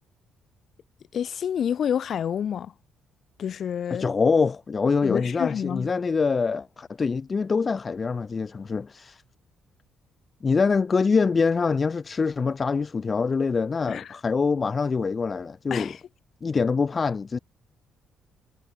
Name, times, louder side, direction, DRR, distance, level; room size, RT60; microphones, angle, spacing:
voice 1, 1.1-2.7 3.4-4.1 5.0-5.9 13.9-14.1 15.7-16.0, left 8 dB, 55° left, 2.8 m, -28 dB
voice 2, 3.9-9.2 10.4-15.9 16.4-17.4, left 5 dB, 30° left, 0.9 m, -24 dB
cardioid pair, 100°, 0 cm